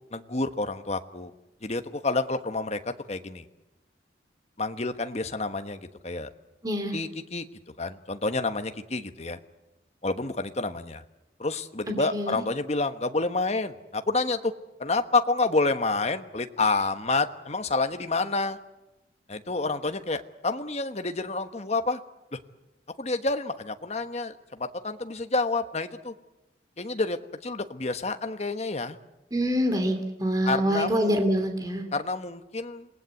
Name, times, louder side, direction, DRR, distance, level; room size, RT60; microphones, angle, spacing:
voice 1, 0.1-1.3 1.6-3.4 4.6-6.3 6.9-7.5 7.8-9.4 10.0-11.0 11.4-14.5 14.8-18.6 19.3-22.0 22.3-22.4 23.0-26.1 26.8-29.0 30.4-31.2 31.9-32.9, left 3 dB, 35° left, 8 dB, 1.2 m, -29 dB
voice 2, 6.6-7.0 11.9-12.4 29.3-31.8, equal, 20° right, 5 dB, 3.0 m, -26 dB
27.5 x 19.0 x 8.3 m, 0.98 s
head